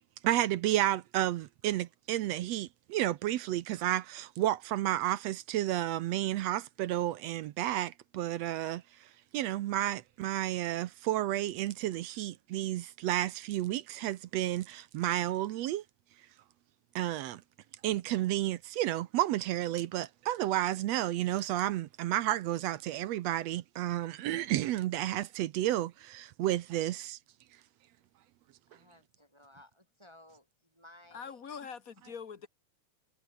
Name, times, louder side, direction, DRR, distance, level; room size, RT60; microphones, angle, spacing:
voice 1, 0.2-8.8 9.3-15.8 16.9-17.4 17.8-27.2, right 14 dB, 70° right, 1.8 m, -31 dB
voice 2, 28.7-31.4, left 1 dB, 10° right, 6.2 m, -58 dB
voice 3, 31.1-32.5, left 6 dB, 45° left, 1.1 m, -43 dB
omnidirectional pair, 3.4 m